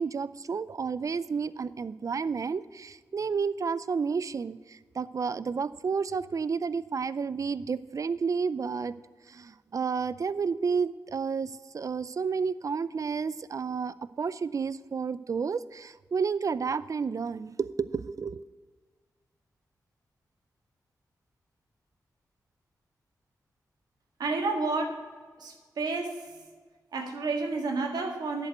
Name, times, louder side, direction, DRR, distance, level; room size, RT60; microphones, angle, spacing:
voice 1, 0.0-8.9 9.3-18.4, right 5 dB, 50° right, 16 dB, 0.5 m, -31 dB
voice 2, 24.2-25.0 25.4-26.4 26.9-28.5, right 3 dB, 80° right, 2 dB, 1.7 m, -30 dB
11.0 x 5.1 x 8.0 m, 1.5 s
cardioid pair, 50°, 7 cm